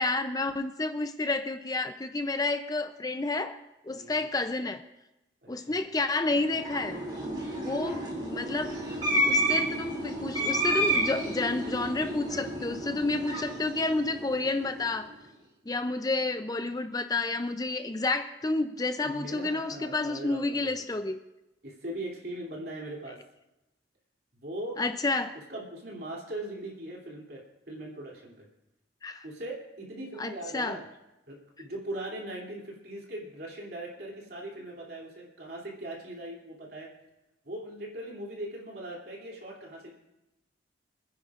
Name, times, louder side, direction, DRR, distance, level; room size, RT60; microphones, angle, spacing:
voice 1, 0.0-3.6 3.8-4.8 5.5-7.0 7.6-8.7 9.2-15.1 15.7-21.2 24.8-25.4 29.0-29.2 30.2-30.8, left 2 dB, 20° left, 9 dB, 0.5 m, -30 dB
voice 2, 3.9-4.3 5.4-5.8 19.0-20.8 21.6-23.2 24.4-24.8 25.5-28.5 29.2-30.8 31.3-36.9 37.4-39.9, right 1 dB, 55° right, -2 dB, 2.9 m, -40 dB
sound 1, 6.3-14.8, right 1 dB, 25° right, 2.7 m, -30 dB
27.5 x 10.0 x 2.5 m, 0.95 s
head